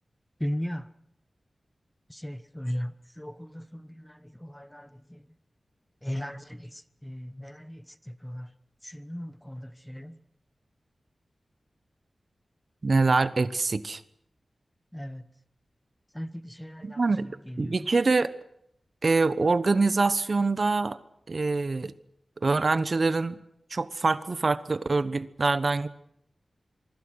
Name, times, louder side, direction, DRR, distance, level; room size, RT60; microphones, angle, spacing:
voice 1, 0.4-0.8 2.1-5.2 6.0-8.5 8.8-10.2 14.9-15.2 16.1-17.0 17.5-17.8, equal, 5° left, 13 dB, 1.2 m, -37 dB
voice 2, 12.8-14.0 16.8-17.3 17.6-18.3 19.0-21.0 21.3-21.9 22.4-23.4 23.7-25.9, right 3 dB, 55° right, 14 dB, 1.1 m, -24 dB
25.0 x 24.0 x 6.4 m, 0.73 s
wide cardioid pair, 75°, 0 cm